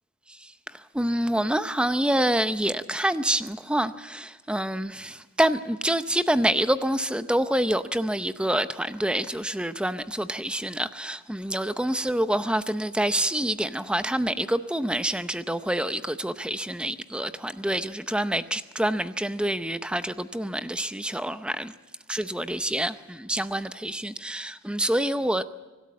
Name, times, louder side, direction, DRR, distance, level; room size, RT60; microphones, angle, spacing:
voice 1, 0.9-21.7 22.1-25.4, right 1 dB, 5° right, 0.6 m, -27 dB
24.5 x 13.0 x 8.3 m
head